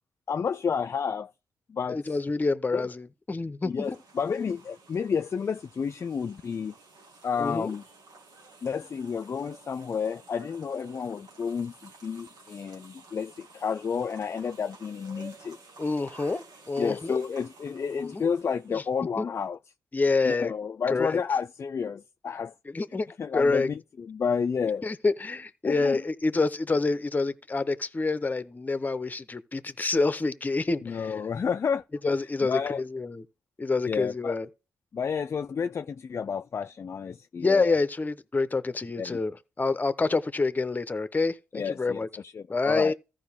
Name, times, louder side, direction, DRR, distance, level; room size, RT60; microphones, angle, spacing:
voice 1, 0.3-1.3 1.7-2.0 2.7-2.9 3.6-6.7 7.2-7.8 8.6-15.6 16.8-19.6 20.2-22.5 23.2-24.8 25.6-26.0 30.8-31.8 32.4-32.8 33.9-34.4 34.9-37.8 39.0-39.2 41.5-42.9, left 6 dB, 40° left, 0.4 m, -30 dB
voice 2, 1.9-3.9 7.4-7.7 15.8-17.2 18.1-18.3 19.2-19.3 19.9-20.5 20.9-21.2 22.7-23.1 23.3-23.7 24.8-31.2 32.0-33.2 33.6-34.5 37.4-42.1 42.5-42.9, left 3 dB, 25° left, 0.8 m, -27 dB
sound 1, 3.8-19.0, right 3 dB, 85° right, 2.3 m, -52 dB
14.5 x 5.1 x 3.6 m
cardioid pair, 85°, 7 cm